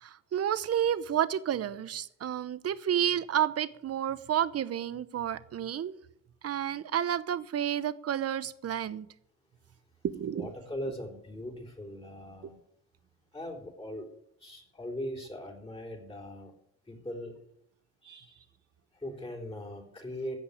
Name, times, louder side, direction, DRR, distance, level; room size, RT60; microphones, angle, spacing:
voice 1, 0.0-5.9 6.4-9.1 10.0-10.5, right 10 dB, 55° right, 15 dB, 0.9 m, -30 dB
voice 2, 10.3-12.6 13.3-14.1 14.4-16.5 16.9-17.4 18.0-18.5 18.9-20.4, left 1 dB, 20° left, 1 dB, 3.9 m, -40 dB
16.0 x 5.4 x 9.9 m, 0.73 s
cardioid pair, 90°, 30 cm